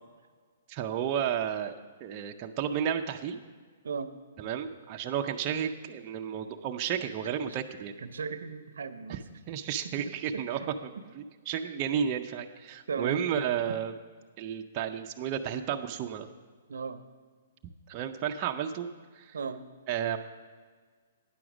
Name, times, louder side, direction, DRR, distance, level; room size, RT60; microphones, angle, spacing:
voice 1, 0.7-3.4 4.4-7.9 9.1-9.2 9.5-10.9 11.2-13.9 14.4-16.3 17.9-18.9 19.1-19.4 19.9-20.2, right 8 dB, 30° right, 3 dB, 0.5 m, -32 dB
voice 2, 8.0-9.2 9.8-10.7 11.0-11.1 12.9-13.2 16.7-17.0 19.3-19.6, right 5 dB, 85° right, 11 dB, 0.6 m, -37 dB
9.8 x 6.1 x 6.0 m, 1.5 s
hypercardioid pair, 150°, 0 cm